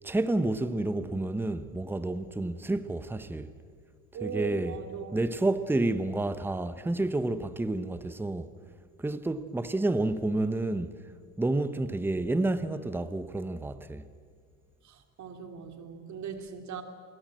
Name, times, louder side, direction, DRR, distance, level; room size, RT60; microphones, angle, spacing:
voice 1, 0.0-3.5 4.2-4.8 5.1-8.5 9.0-10.9 11.4-14.1, right 2 dB, 5° right, 0.9 m, -29 dB
voice 2, 4.1-5.2 14.8-16.8, right 6 dB, 45° right, 3.0 m, -39 dB
28.5 x 19.0 x 7.8 m
supercardioid pair, 110°, 41 cm